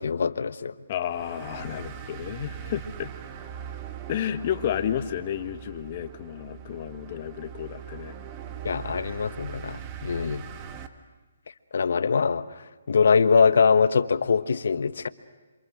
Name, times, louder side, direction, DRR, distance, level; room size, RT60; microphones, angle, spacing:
voice 1, 0.0-0.7 8.6-10.5 11.7-15.1, left 5 dB, 70° left, 13 dB, 1.2 m, -23 dB
voice 2, 0.9-3.1 4.1-8.1, left 10 dB, 40° left, 9 dB, 1.8 m, -31 dB
sound 1, 1.0-10.9, right 8 dB, 30° right, 1.8 m, -41 dB
27.5 x 27.0 x 6.4 m, 1.3 s
hypercardioid pair, 145°, 0 cm